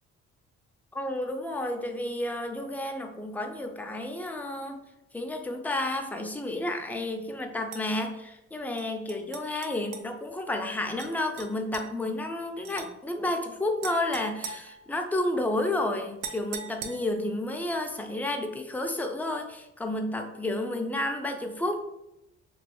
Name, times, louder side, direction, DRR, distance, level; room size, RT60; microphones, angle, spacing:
voice 1, 0.9-4.8 5.1-21.8, left 1 dB, 5° left, 4 dB, 0.3 m, -31 dB
sound 1, 7.7-7.8 8.8-10.1 11.0-11.1 11.4-11.9 12.6-12.9 13.8-15.3 16.2-17.3, right 5 dB, 75° right, 0.5 m, -41 dB
3.0 x 2.3 x 3.1 m, 0.90 s
cardioid pair, 90°, 30 cm